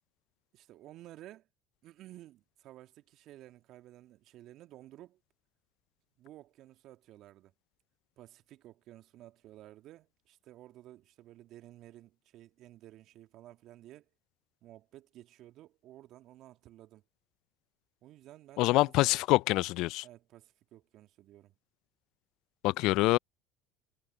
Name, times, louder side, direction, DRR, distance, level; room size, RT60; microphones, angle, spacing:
voice 1, 0.5-1.5 1.8-5.2 6.2-7.5 8.2-14.1 14.6-17.0 18.0-19.2 20.0-21.5, right 14 dB, 55° right, 2.0 m, -54 dB
voice 2, 18.6-20.0 22.6-23.2, left 20 dB, 60° left, 0.4 m, -25 dB
hypercardioid pair, 70°, 0 cm